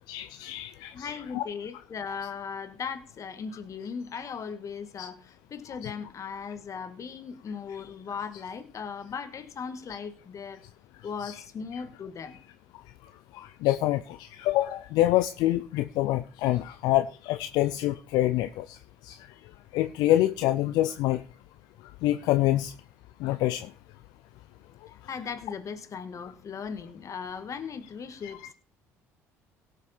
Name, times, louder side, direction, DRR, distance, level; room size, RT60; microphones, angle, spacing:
voice 1, 0.1-1.4 5.0-5.1 5.8-5.9 11.2-11.4 13.3-18.8 19.0-19.2 19.7-21.2 22.0-22.7 23.2-23.7 28.2-28.5, left 15 dB, 70° left, 0.6 m, -26 dB
voice 2, 0.9-10.6 11.0-12.4 25.1-28.5, left 6 dB, 45° left, 2.0 m, -38 dB
18.0 x 6.5 x 4.4 m
hypercardioid pair, 60°, 7 cm